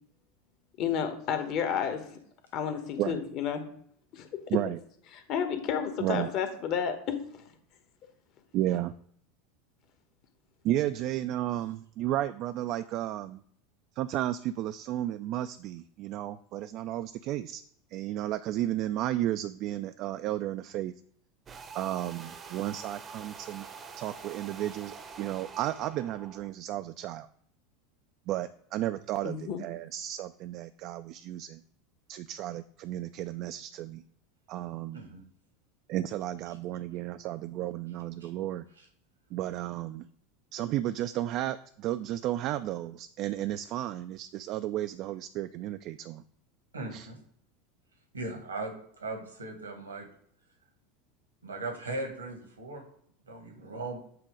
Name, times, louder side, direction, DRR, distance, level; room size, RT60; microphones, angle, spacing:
voice 1, 0.8-2.2 2.5-3.6 4.1-4.3 5.1-7.4 29.2-29.6, left 7 dB, 50° left, 7 dB, 1.2 m, -31 dB
voice 2, 8.5-8.9 10.6-13.4 14.0-17.6 17.9-20.9 21.7-23.7 24.0-27.3 28.3-31.6 32.1-34.0 34.5-35.1 35.9-38.6 39.3-40.1 40.5-46.2 46.9-47.1, right 13 dB, 50° right, 11 dB, 0.3 m, -33 dB
sound 1, 21.5-26.5, right 5 dB, 30° right, 0.7 m, -46 dB
voice 3, 46.7-47.2 48.1-48.7 49.0-50.1 51.4-52.8 53.3-54.0, right 2 dB, 85° right, 2 dB, 1.6 m, -38 dB
7.7 x 2.9 x 4.9 m, 0.65 s
figure-of-eight pair, 80°, 0 cm